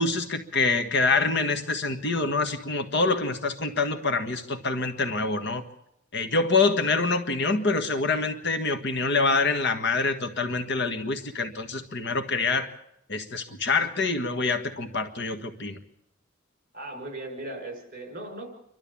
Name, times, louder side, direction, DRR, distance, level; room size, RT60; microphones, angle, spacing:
voice 1, 0.0-5.6 6.1-12.7 13.1-15.8, left 3 dB, 60° left, 8 dB, 1.6 m, -26 dB
voice 2, 16.7-18.5, right 2 dB, 45° right, 4 dB, 6.1 m, -37 dB
28.0 x 12.5 x 8.6 m, 0.78 s
head